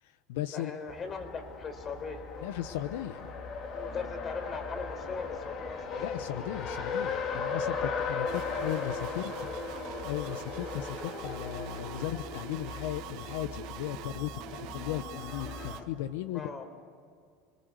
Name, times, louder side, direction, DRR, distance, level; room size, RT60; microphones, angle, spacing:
voice 1, 0.0-0.7 2.4-3.3 6.0-9.5 10.0-16.5, left 12 dB, 85° left, 11 dB, 0.9 m, -36 dB
voice 2, 0.5-2.2 3.6-5.8 7.9-8.6 16.3-16.6, left 4 dB, 30° left, 7 dB, 4.3 m, -40 dB
Race car auto racing, 0.9-15.8, left 5 dB, 50° left, 3.1 m, -37 dB
sound 1, 8.3-15.8, right 13 dB, 70° right, 1.5 m, -44 dB
28.0 x 21.5 x 8.1 m, 2.2 s
supercardioid pair, 115°, 0 cm